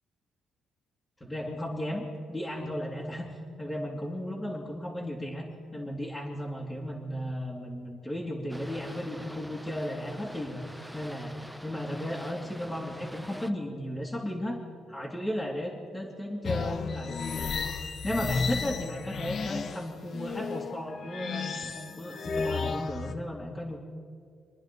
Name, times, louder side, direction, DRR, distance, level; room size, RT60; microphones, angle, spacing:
voice 1, 1.2-3.3 3.6-5.5 5.7-11.3 11.6-14.6 14.9-17.7 18.0-21.6 21.9-23.8, equal, 15° left, -5 dB, 2.9 m, -35 dB
Boat Water vehicle, 8.5-13.5, equal, ahead, 0.6 m, -45 dB
sound 1, 16.4-23.1, left 5 dB, 55° left, 1.0 m, -33 dB
27.0 x 10.0 x 5.4 m, 2.2 s
cardioid pair, 90°, 0 cm